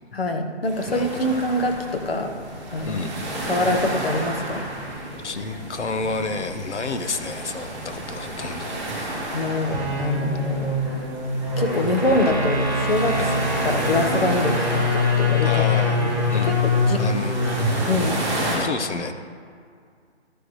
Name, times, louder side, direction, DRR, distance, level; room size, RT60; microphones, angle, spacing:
voice 1, 0.1-2.3 2.7-3.1 3.5-4.6 9.3-10.7 11.6-13.3 13.6-15.5 16.0-17.0 17.9-18.4, left 2 dB, 55° left, 5 dB, 1.2 m, -24 dB
sound 1, 0.6-18.6, right 1 dB, 5° right, 1.8 m, -32 dB
voice 2, 0.9-1.3 2.8-3.1 5.2-9.2 13.2-13.4 15.4-16.0 16.3-16.6 17.0-17.4 18.6-19.1, left 3 dB, 80° left, 8 dB, 1.1 m, -30 dB
sound 2, 9.6-18.1, left 2 dB, 15° left, 0.7 m, -23 dB
14.0 x 6.6 x 3.2 m, 2.1 s
hypercardioid pair, 180°, 34 cm